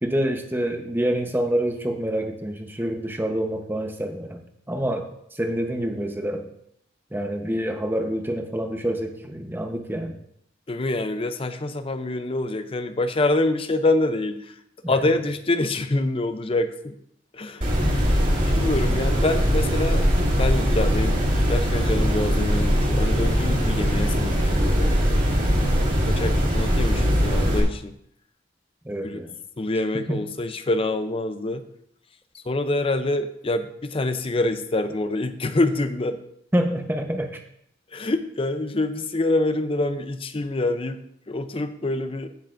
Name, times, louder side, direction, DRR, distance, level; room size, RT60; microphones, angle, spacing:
voice 1, 0.0-4.4 4.7-5.1 5.3-6.4 7.1-10.1 14.8-14.9 28.8-29.3 30.1-30.2 36.5-37.3, right 1 dB, 10° right, 4 dB, 0.9 m, -26 dB
voice 2, 10.7-14.6 14.9-17.0 17.3-17.7 18.3-20.0 20.4-21.2 21.5-25.2 25.9-27.9 29.0-29.2 29.6-31.6 32.3-36.2 37.9-41.0 41.3-42.3, left 2 dB, 30° left, 10 dB, 0.6 m, -26 dB
sound 1, 17.6-27.6, equal, 45° right, 2.4 m, -21 dB
15.5 x 6.5 x 2.6 m, 0.69 s
head